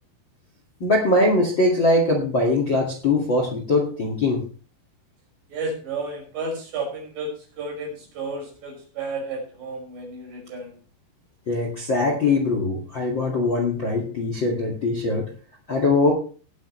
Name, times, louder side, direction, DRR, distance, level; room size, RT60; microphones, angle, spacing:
voice 1, 0.8-4.4 11.5-15.3 15.7-16.1, left 2 dB, 40° left, 2 dB, 1.8 m, -21 dB
voice 2, 5.5-7.3 7.6-10.7, right 3 dB, 70° right, 0 dB, 7.7 m, -32 dB
19.0 x 9.3 x 3.2 m, 0.40 s
omnidirectional pair, 5.1 m